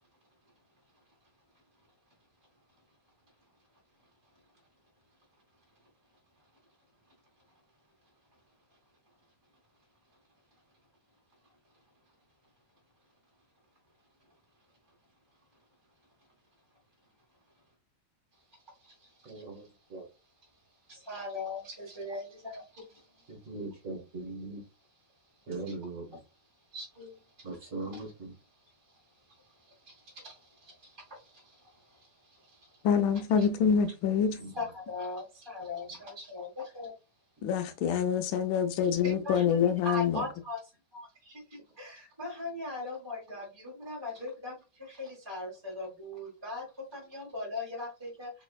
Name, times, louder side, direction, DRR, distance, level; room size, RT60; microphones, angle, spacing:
voice 1, 19.2-20.1 23.3-24.6 25.5-26.1 27.4-28.3 34.3-34.5, right 2 dB, 45° right, 1.4 m, -40 dB
voice 2, 20.9-22.6 25.7-25.8 26.7-27.1 27.9-28.0 30.2-30.3 33.4-33.5 34.5-36.9 39.0-40.6 40.9-41.1 41.5-44.5 44.8-46.6 46.9-48.3, left 2 dB, 15° right, 1.4 m, -39 dB
voice 3, 32.8-34.4 37.4-40.2, left 7 dB, 85° left, 1.5 m, -26 dB
4.1 x 3.8 x 2.3 m
omnidirectional pair, 2.1 m